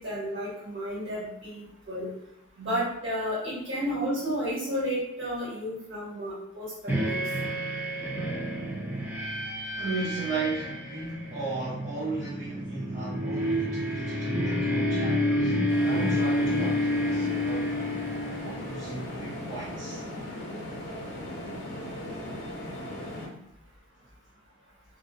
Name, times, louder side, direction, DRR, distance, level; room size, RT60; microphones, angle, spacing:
voice 1, 0.0-2.1 2.6-7.2, equal, 65° right, -7 dB, 1.4 m, -32 dB
sound 1, 6.9-18.9, equal, 10° right, 0.4 m, -29 dB
voice 2, 9.8-17.8 18.4-20.0, right 3 dB, 35° right, -12 dB, 0.9 m, -36 dB
sound 2, 15.7-23.3, left 1 dB, 50° left, 0.5 m, -38 dB
2.5 x 2.1 x 2.6 m, 0.79 s
head